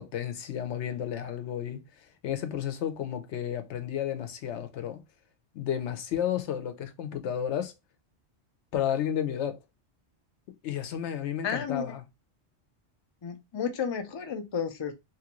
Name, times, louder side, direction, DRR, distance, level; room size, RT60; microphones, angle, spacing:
voice 1, 0.0-1.8 2.2-5.0 5.5-7.7 8.7-9.6 10.6-12.0, left 9 dB, 80° left, 0.9 m, -32 dB
voice 2, 11.4-11.9 13.2-14.9, left 7 dB, 45° left, 0.3 m, -32 dB
3.0 x 2.5 x 2.9 m
omnidirectional pair, 1.2 m